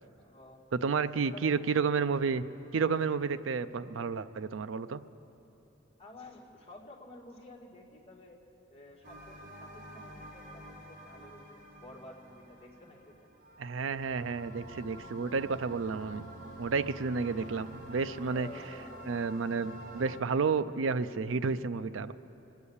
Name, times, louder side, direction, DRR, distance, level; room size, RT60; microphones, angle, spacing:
voice 1, 0.2-0.6 1.0-1.6 6.0-8.4 8.7-13.3 17.4-17.6 18.3-19.1, left 1 dB, 30° left, -2 dB, 1.9 m, -51 dB
voice 2, 0.7-2.4 2.7-5.0 13.6-16.3 16.6-18.5 19.1-22.1, right 5 dB, 75° right, 13 dB, 0.5 m, -31 dB
sound 1, 9.0-20.2, right 1 dB, 60° right, 3.4 m, -48 dB
24.0 x 8.3 x 7.1 m, 3.0 s
head